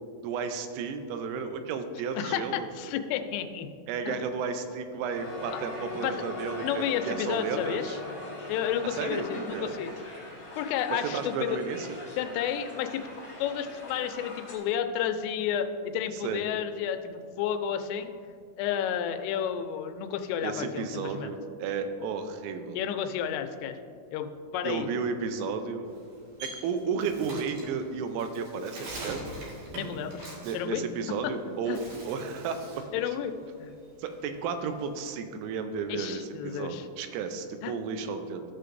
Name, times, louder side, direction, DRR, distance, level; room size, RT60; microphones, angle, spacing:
voice 1, 0.2-2.7 3.9-8.0 8.8-9.8 10.9-12.0 16.1-16.4 20.4-22.8 24.6-25.9 26.4-29.2 30.4-32.9 34.0-38.4, right 5 dB, 85° right, 7 dB, 3.2 m, -33 dB
voice 2, 2.2-3.7 4.1-4.2 6.0-6.1 6.6-8.0 8.5-9.9 10.6-11.6 12.2-13.0 13.4-18.1 18.6-21.3 22.8-23.8 24.1-24.3 24.5-24.9 29.7-30.3 30.5-30.8 31.2-31.3 31.7-31.8 32.9-33.3 33.6-33.7 35.9-36.8 37.6-37.7, left 9 dB, 85° left, 7 dB, 3.1 m, -31 dB
Crowd, 5.1-14.6, left 1 dB, 35° left, 1.8 m, -41 dB
Bird, 25.9-31.3 31.7-32.9 33.3-35.0, right 1 dB, 55° right, 2.9 m, -43 dB
15.0 x 6.5 x 2.6 m, 2.3 s
omnidirectional pair, 5.7 m